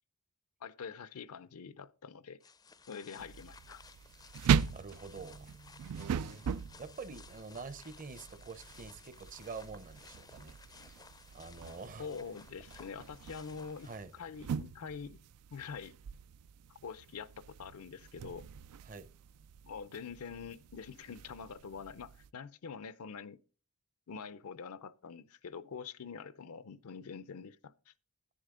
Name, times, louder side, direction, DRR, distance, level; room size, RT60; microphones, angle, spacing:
voice 1, 0.6-2.4 2.9-3.8 12.0-15.2 15.5-16.0 16.7-18.5 19.6-23.4 24.1-27.9, left 6 dB, 75° left, 0.5 m, -45 dB
sound 1, 2.4-14.4, left 5 dB, 15° left, 0.4 m, -58 dB
sound 2, 3.2-22.3, right 7 dB, 85° right, 0.4 m, -40 dB
voice 2, 4.7-5.5 6.0-6.4 6.8-11.0 11.3-12.1 13.8-14.1 18.8-19.1, right 4 dB, 35° right, 0.7 m, -46 dB
sound 3, 5.1-8.6, right 3 dB, 65° right, 1.8 m, -62 dB
10.5 x 10.0 x 3.7 m
head